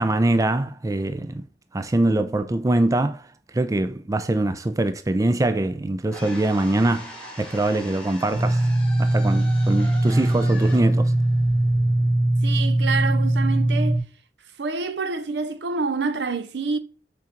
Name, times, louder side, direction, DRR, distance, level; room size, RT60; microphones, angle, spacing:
voice 1, 0.0-1.4 1.7-3.3 3.5-8.6 9.0-11.1, right 2 dB, 20° right, 0.4 m, -23 dB
sound 1, 6.1-12.2, equal, 5° left, 1.7 m, -41 dB
sound 2, 8.3-14.0, right 1 dB, 40° right, 1.0 m, -20 dB
voice 2, 12.4-14.0 14.6-16.8, right 4 dB, 75° right, 0.7 m, -27 dB
5.4 x 3.8 x 5.1 m
head